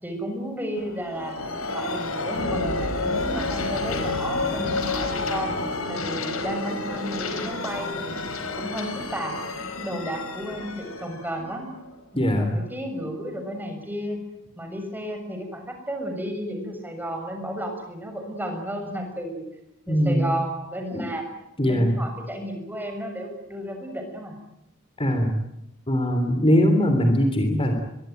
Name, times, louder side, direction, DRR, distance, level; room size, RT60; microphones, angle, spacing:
voice 1, 0.0-5.5 5.9-8.2 8.5-9.3 9.8-11.7 12.1-14.2 14.6-19.4 19.9-21.2 21.6-24.3, equal, 10° right, 4 dB, 6.6 m, -33 dB
sound 1, 0.8-12.3, left 3 dB, 90° left, 4.9 m, -30 dB
voice 2, 12.1-12.6 19.9-20.3 20.9-21.1 21.6-22.0 25.0-25.3 25.9-27.7, equal, 25° left, 5 dB, 3.3 m, -21 dB
24.0 x 23.0 x 9.2 m, 0.85 s
head